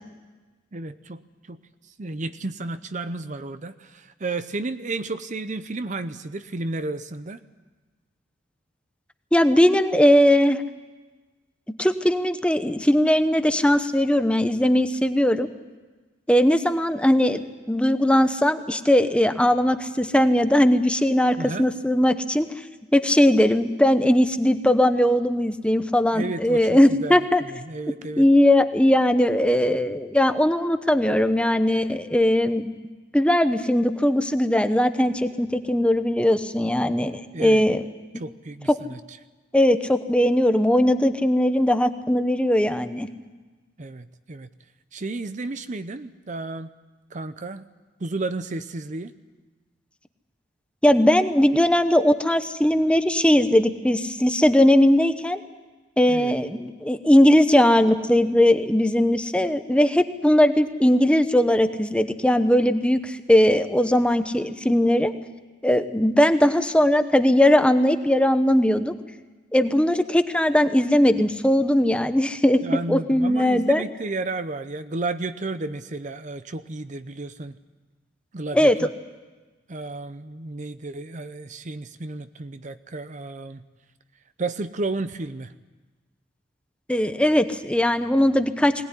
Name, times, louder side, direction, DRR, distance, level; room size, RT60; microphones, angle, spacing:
voice 1, 0.7-1.2 1.5-1.6 2.0-7.4 21.4-21.7 26.1-28.3 37.3-37.6 38.1-39.2 43.8-44.5 44.9-46.7 47.1-47.7 48.0-49.1 56.1-56.3 72.6-77.6 78.3-78.9 79.7-83.6 84.4-85.5, right 2 dB, 40° right, 11 dB, 0.7 m, -32 dB
voice 2, 9.3-10.6 11.8-15.5 16.3-22.5 22.9-27.4 28.2-32.7 33.1-37.8 39.5-43.1 50.8-55.4 56.0-65.1 65.6-68.9 69.5-72.6 72.9-73.8 78.5-78.8 86.9-88.9, left 1 dB, 5° left, 9 dB, 0.9 m, -19 dB
21.0 x 18.5 x 9.8 m, 1.3 s
head